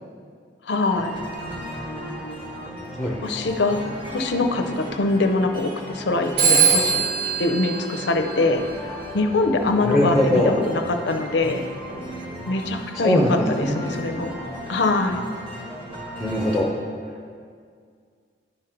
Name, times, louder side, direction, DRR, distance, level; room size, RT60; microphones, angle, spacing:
voice 1, 0.6-1.1 3.2-7.1 7.4-8.6 9.1-11.7 12.5-14.4 14.7-15.2, left 2 dB, 65° left, 6 dB, 0.5 m, -23 dB
sound 1, 0.9-16.6, equal, 30° right, 1.6 m, -36 dB
Telephone, 6.4-8.9, right 6 dB, 55° right, 1.2 m, -22 dB
voice 2, 9.9-10.5 13.0-13.8 16.2-16.7, left 1 dB, ahead, -3 dB, 0.7 m, -20 dB
11.0 x 3.9 x 4.4 m, 2.1 s
head